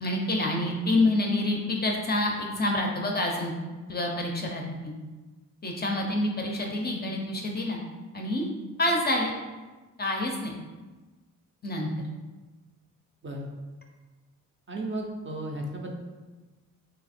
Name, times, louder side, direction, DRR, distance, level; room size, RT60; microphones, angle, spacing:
voice 1, 0.0-3.5 3.9-4.9 5.6-7.8 8.1-8.5 8.8-9.3 10.0-10.5 11.6-11.9, left 1 dB, 30° left, 1 dB, 0.4 m, -27 dB
voice 2, 14.7-15.9, right 1 dB, 35° right, 1 dB, 0.4 m, -34 dB
3.2 x 2.7 x 4.1 m, 1.2 s
wide cardioid pair, 175°, 33 cm